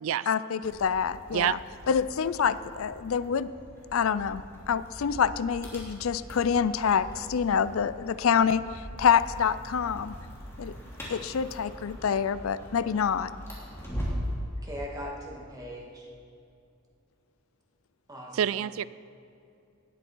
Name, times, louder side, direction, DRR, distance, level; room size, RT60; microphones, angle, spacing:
voice 1, 0.3-1.6 1.9-3.5 3.9-4.4 4.7-10.1 10.6-10.7 11.1-13.3, left 7 dB, 75° left, 15 dB, 0.4 m, -26 dB
sound 1, 0.6-14.3, equal, 10° left, 3.1 m, -41 dB
voice 2, 1.3-1.6 18.3-18.9, right 9 dB, 70° right, 19 dB, 0.3 m, -27 dB
voice 3, 14.6-16.1 18.1-18.7, equal, 20° right, -2 dB, 2.1 m, -40 dB
19.0 x 9.8 x 4.6 m, 2.5 s
head